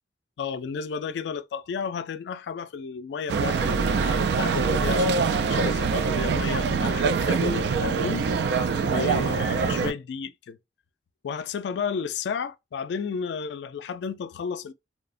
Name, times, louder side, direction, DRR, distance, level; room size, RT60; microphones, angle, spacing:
voice 1, 0.4-8.3 8.8-10.6 11.2-14.7, left 6 dB, 75° left, 0.3 m, -33 dB
sound 1, 3.3-9.9, right 5 dB, 70° right, 0.3 m, -24 dB
2.7 x 2.0 x 2.4 m
head